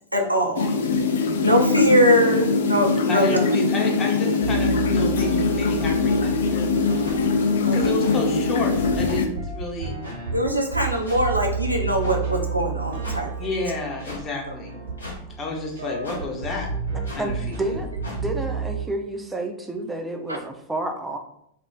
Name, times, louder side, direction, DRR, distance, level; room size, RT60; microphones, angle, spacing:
voice 1, 0.1-0.7 1.4-3.4 7.6-7.8 10.3-13.3, equal, 90° right, 1 dB, 0.4 m, -21 dB
sound 1, 0.5-9.3, left 4 dB, 60° left, 0.3 m, -22 dB
voice 2, 3.1-6.7 7.7-10.0 13.4-14.8 15.4-16.7 17.1-17.8, left 2 dB, 25° left, 0 dB, 0.7 m, -30 dB
sound 2, 4.4-18.9, right 5 dB, 65° right, 0.8 m, -32 dB
sound 3, 7.0-7.2 8.0-8.1 9.0-9.2 10.0-10.2 11.0-11.2 12.0-12.2 13.0-13.2 14.0-14.2 15.0-15.2 16.0-16.2 17.0-17.3 18.0-18.2, left 2 dB, 75° left, 0.8 m, -37 dB
voice 3, 17.2-17.9 18.2-21.2, right 2 dB, 10° right, 4 dB, 0.4 m, -30 dB
2.4 x 2.1 x 3.1 m, 0.73 s
figure-of-eight pair, 90°, 0 cm